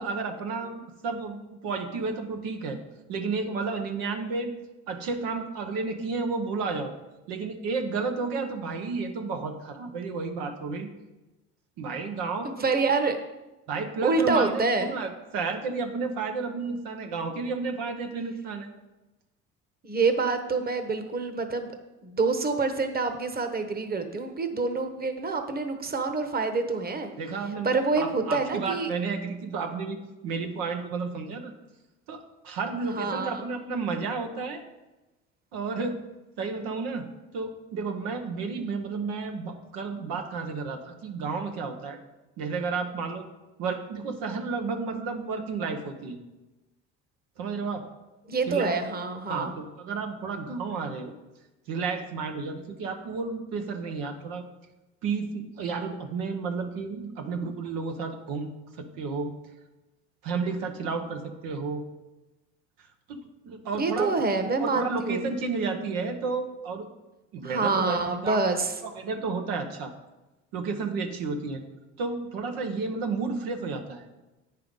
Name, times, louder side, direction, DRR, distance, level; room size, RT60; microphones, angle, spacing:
voice 1, 0.0-1.4 1.6-2.8 3.1-4.5 4.9-6.9 7.3-10.9 11.8-12.7 13.7-18.7 27.2-27.7 28.0-30.0 30.2-31.5 32.1-34.6 35.5-36.0 36.4-37.1 37.3-42.0 42.4-43.2 43.6-46.2 47.4-47.9 48.4-48.8 49.3-51.1 51.7-54.4 55.0-59.3 60.2-61.8 63.1-64.1 64.6-66.9 67.3-68.0 68.2-68.4 68.8-69.9 70.5-71.6 72.0-74.0, right 4 dB, 85° right, 4 dB, 1.0 m, -32 dB
voice 2, 12.6-13.2 14.0-14.9 19.8-21.7 22.0-27.1 27.6-28.9 32.9-33.4 48.3-49.5 63.8-65.3 67.4-68.7, right 4 dB, 30° right, 7 dB, 1.1 m, -26 dB
9.0 x 5.7 x 5.3 m, 1.0 s
supercardioid pair, 80°, 33 cm